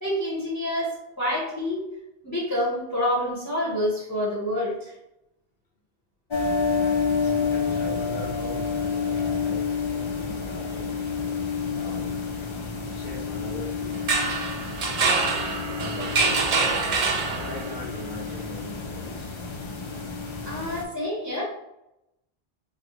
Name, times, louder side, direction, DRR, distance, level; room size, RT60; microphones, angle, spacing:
voice 1, 0.0-1.8 2.2-4.9 20.4-21.4, left 1 dB, 20° left, -5 dB, 0.7 m, -27 dB
sound 1, 6.3-20.8, left 5 dB, 50° left, 0.3 m, -29 dB
voice 2, 6.4-11.0 11.7-12.2 12.8-14.1 15.7-16.8 17.4-19.4, left 1 dB, 80° left, -5 dB, 0.9 m, -40 dB
sound 2, 13.9-17.8, right 4 dB, 50° right, 0.5 m, -25 dB
3.6 x 2.1 x 2.8 m, 0.87 s
omnidirectional pair, 1.0 m